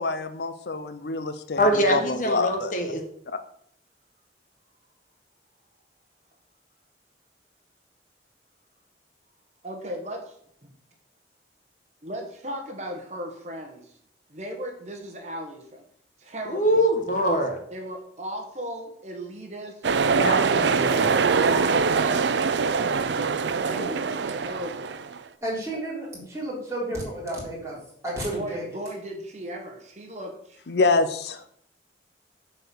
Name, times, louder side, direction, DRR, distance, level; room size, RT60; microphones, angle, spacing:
voice 1, 0.0-2.7 3.3-3.4 30.7-31.4, left 3 dB, 65° left, 10 dB, 0.6 m, -26 dB
voice 2, 1.6-3.0 16.5-17.6 20.2-21.1, equal, 45° left, 4 dB, 1.3 m, -23 dB
voice 3, 9.6-10.3 12.0-13.9 14.3-15.8 16.2-16.6 17.7-22.4 23.6-25.0 25.7-25.8 28.3-30.6, equal, 40° right, 2 dB, 1.3 m, -37 dB
sound 1, 19.8-25.2, right 5 dB, 75° right, 0.5 m, -23 dB
voice 4, 25.4-27.8 28.0-28.6, right 1 dB, 15° right, -6 dB, 3.5 m, -31 dB
7.7 x 4.5 x 6.9 m, 0.66 s
head